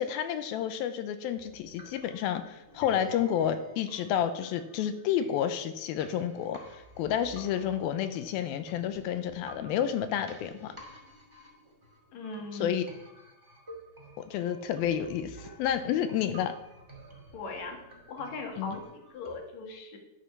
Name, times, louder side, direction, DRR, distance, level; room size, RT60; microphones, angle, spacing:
voice 1, 0.0-10.8 12.6-12.8 14.2-16.5 18.6-18.8, left 9 dB, 80° left, 10 dB, 2.3 m, -30 dB
sound 1, 1.4-19.4, right 1 dB, 15° right, 0.9 m, -52 dB
voice 2, 12.1-12.8 17.3-20.0, left 3 dB, 55° left, 3 dB, 2.5 m, -39 dB
11.5 x 6.6 x 5.8 m, 0.91 s
omnidirectional pair, 4.6 m